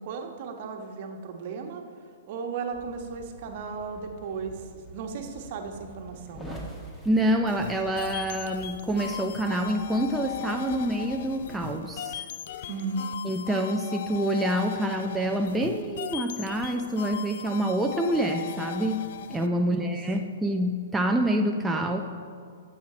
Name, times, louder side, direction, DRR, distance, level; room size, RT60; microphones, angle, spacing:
voice 1, 0.0-1.8 2.3-6.7 12.7-13.1 19.6-19.9, right 5 dB, 50° right, 4 dB, 1.2 m, -35 dB
sound 1, 2.7-11.7, right 1 dB, 15° left, 1.8 m, -47 dB
voice 2, 7.1-12.2 13.2-22.0, right 1 dB, 5° right, 2 dB, 0.6 m, -27 dB
sound 2, 7.5-19.5, left 10 dB, 60° left, 0.4 m, -38 dB
13.0 x 7.7 x 4.3 m, 2.2 s
hypercardioid pair, 120°, 0 cm